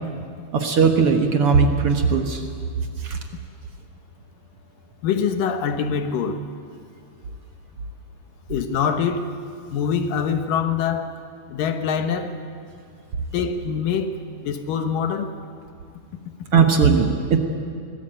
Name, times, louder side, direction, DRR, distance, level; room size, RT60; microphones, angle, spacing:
voice 1, 0.5-2.4 3.0-3.2 16.5-17.4, right 5 dB, 55° right, 4 dB, 2.0 m, -18 dB
voice 2, 5.0-6.4 8.5-9.3 9.7-11.1 11.5-12.3 13.3-14.1 14.4-15.3, left 7 dB, 85° left, 8 dB, 3.0 m, -24 dB
25.0 x 19.5 x 8.9 m, 2.3 s
omnidirectional pair, 3.8 m